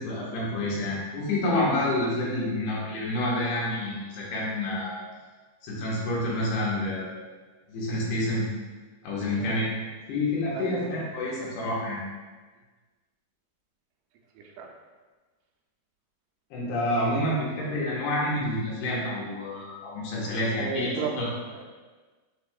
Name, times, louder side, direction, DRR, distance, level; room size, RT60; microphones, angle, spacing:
voice 1, 0.0-5.0 5.6-7.2 7.7-8.5 9.0-9.7 10.1-12.0 16.5-20.9 21.2-21.3, left 1 dB, 75° left, -5 dB, 2.4 m, -28 dB
voice 2, 10.5-11.1 14.3-14.7 20.6-21.6, right 5 dB, 80° right, 0 dB, 2.0 m, -34 dB
6.0 x 3.5 x 2.3 m, 1.3 s
omnidirectional pair, 4.2 m